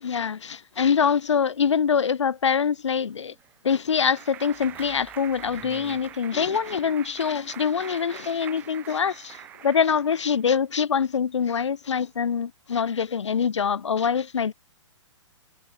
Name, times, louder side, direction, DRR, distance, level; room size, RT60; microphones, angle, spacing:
voice 1, 0.0-3.3 3.6-14.5, left 6 dB, 65° left, 0.6 m, -24 dB
Clapping, 3.1-10.4, right 12 dB, 10° right, 0.4 m, -43 dB
sound 1, 4.5-7.2, left 9 dB, 15° left, 7.8 m, -61 dB
figure-of-eight pair, 125°, 16 cm